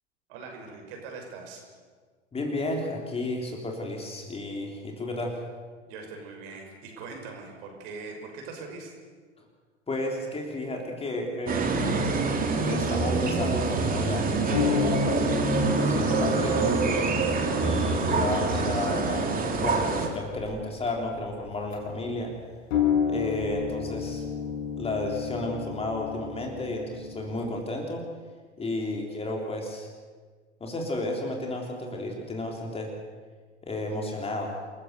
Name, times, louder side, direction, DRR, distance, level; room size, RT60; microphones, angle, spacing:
voice 1, 0.3-1.6 5.9-8.9, right 4 dB, 55° right, 2 dB, 6.3 m, -41 dB
voice 2, 2.3-5.4 9.9-11.8 12.6-15.4 15.7-17.1 17.6-22.3 23.1-24.2 24.8-28.1 28.6-29.9 30.6-32.9 33.6-34.6, left 2 dB, 15° left, 0 dB, 3.6 m, -32 dB
sound 1, 11.5-20.1, right 3 dB, 25° right, 3.1 m, -26 dB
sound 2, 13.4-22.0 22.7-27.6, left 7 dB, 60° left, 5.3 m, -33 dB
28.0 x 15.0 x 6.8 m, 1.5 s
hypercardioid pair, 95°, 36 cm